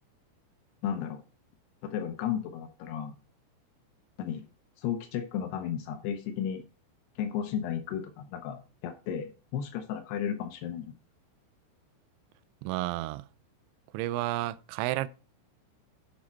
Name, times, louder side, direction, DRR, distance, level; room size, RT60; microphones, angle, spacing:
voice 1, 0.8-1.2 1.8-3.2 4.2-4.4 4.8-6.6 7.2-10.9, left 9 dB, 90° left, 2.3 m, -34 dB
voice 2, 12.6-13.3 13.9-15.1, right 16 dB, 90° right, 2.6 m, -31 dB
8.5 x 7.3 x 4.4 m
omnidirectional pair, 5.8 m